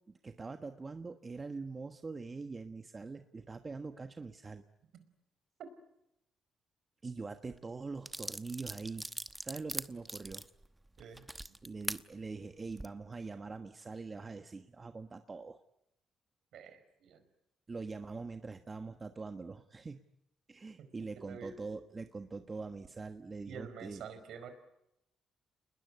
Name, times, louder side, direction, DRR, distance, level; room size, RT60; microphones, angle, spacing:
voice 1, 0.1-4.6 7.0-9.1 9.4-10.5 11.6-15.6 17.7-20.0 20.5-24.0, right 4 dB, 30° right, 7 dB, 1.3 m, -43 dB
sound 1, 7.5-7.6 8.1-12.0 12.6-12.9, right 1 dB, 10° right, 1.0 m, -41 dB
voice 2, 16.5-17.3 20.8-21.6 23.4-24.5, right 6 dB, 75° right, 10 dB, 4.7 m, -48 dB
28.5 x 20.5 x 10.0 m, 0.84 s
cardioid pair, 90°, 0 cm